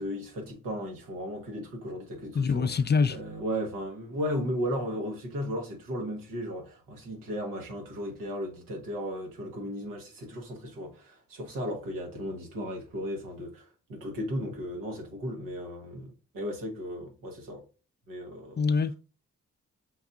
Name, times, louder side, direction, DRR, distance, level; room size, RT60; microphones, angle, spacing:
voice 1, 0.0-2.7 3.1-17.6 18.1-18.6, equal, 90° right, 1.2 m, -35 dB
voice 2, 2.3-3.2 18.6-18.9, left 5 dB, 30° left, 0.4 m, -24 dB
6.0 x 2.7 x 2.3 m
supercardioid pair, 50°, 32 cm